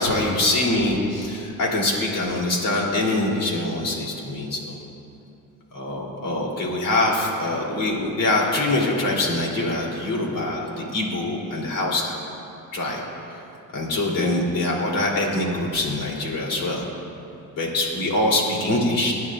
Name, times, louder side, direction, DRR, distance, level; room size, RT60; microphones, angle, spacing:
voice 1, 0.0-4.7 5.7-12.2 12.7-13.0 13.7-16.8 17.6-19.1, left 2 dB, 70° left, -3 dB, 3.2 m, -24 dB
24.0 x 10.5 x 2.5 m, 2.7 s
cardioid pair, 105°, 34 cm